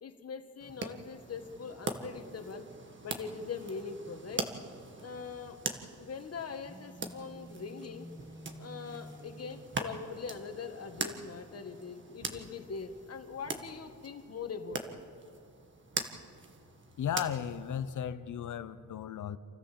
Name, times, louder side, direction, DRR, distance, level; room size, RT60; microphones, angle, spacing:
voice 1, 0.0-2.7 3.0-4.5 5.0-5.6 6.0-8.1 8.6-15.0, left 5 dB, 45° left, 1.7 m, -42 dB
sound 1, 0.6-18.0, right 3 dB, 35° right, 1.7 m, -42 dB
Telephone, 6.6-9.8, equal, 10° right, 2.1 m, -50 dB
voice 2, 17.0-19.4, left 9 dB, 65° left, 0.9 m, -35 dB
28.0 x 14.5 x 7.7 m
cardioid pair, 110°, 33 cm